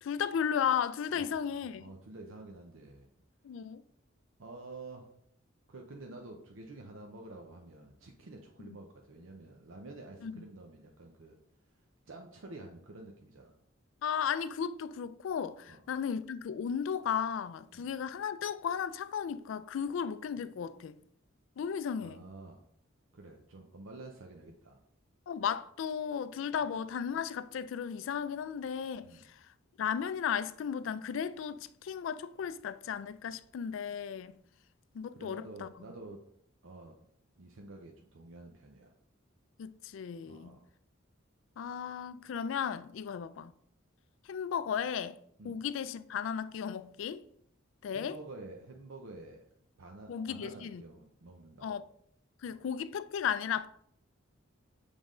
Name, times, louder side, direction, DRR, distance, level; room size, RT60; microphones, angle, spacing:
voice 1, 0.0-1.9 3.4-3.8 10.2-10.4 14.0-21.0 21.6-22.2 25.3-29.5 29.8-34.3 34.9-35.7 39.6-40.6 41.6-43.5 44.3-45.2 45.4-47.2 47.8-48.1 50.1-50.8 51.6-51.8 52.4-53.7, left 7 dB, 70° left, 0.3 m, -35 dB
voice 2, 1.1-3.1 4.4-5.1 5.7-11.4 12.1-13.5 15.7-15.8 17.7-17.9 22.0-22.6 23.1-24.8 29.0-29.2 35.1-36.2 36.6-36.9 37.4-38.9 40.2-40.6 45.4-45.6 47.9-49.4 49.8-51.7 52.5-52.6, right 2 dB, 75° right, 0.7 m, -49 dB
7.3 x 3.4 x 3.8 m
head